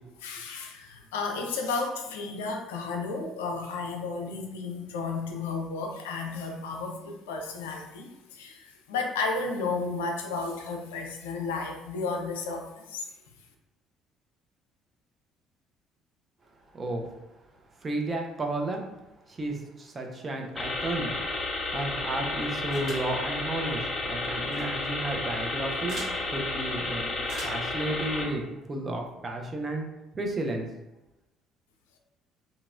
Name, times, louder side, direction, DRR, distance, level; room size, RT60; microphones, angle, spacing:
voice 1, 0.2-13.1, left 4 dB, 70° left, 2 dB, 0.4 m, -33 dB
voice 2, 16.7-17.1 17.8-18.9 19.3-21.2 21.7-27.1 27.4-29.9 30.1-30.7, right 2 dB, 30° right, 2 dB, 0.5 m, -33 dB
sound 1, 20.6-28.2, left 2 dB, 20° left, 0.8 m, -32 dB
sound 2, 22.7-23.1 24.4-24.6 25.9-26.1 27.2-27.7, right 1 dB, 50° right, 1.1 m, -41 dB
2.8 x 2.7 x 2.3 m, 0.97 s
figure-of-eight pair, 50°, 0 cm